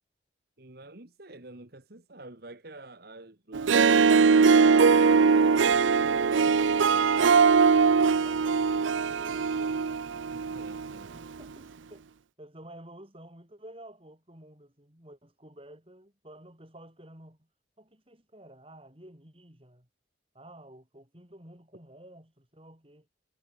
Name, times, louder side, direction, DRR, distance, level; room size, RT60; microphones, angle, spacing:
voice 1, 0.6-5.0 5.6-6.7 10.3-11.3 11.7-11.8, right 2 dB, 55° right, 1.9 m, -48 dB
Harp, 3.5-11.0, right 5 dB, 85° right, 0.6 m, -21 dB
voice 2, 7.9-9.9 11.1-12.1 12.4-17.5 17.8-19.9 20.3-23.1, right 1 dB, 30° right, 5.2 m, -51 dB
head